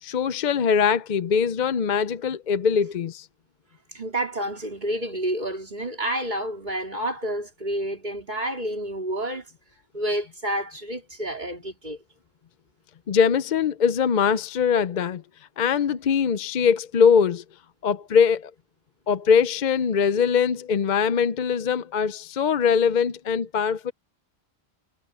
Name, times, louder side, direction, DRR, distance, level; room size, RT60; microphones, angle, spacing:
voice 1, 0.0-3.3 13.1-15.2 15.6-17.4 17.8-18.5 19.1-23.9, left 6 dB, 50° left, 0.6 m, -22 dB
voice 2, 3.9-9.5 9.9-12.0, right 1 dB, 45° right, 4.1 m, -29 dB
omnidirectional pair, 1.1 m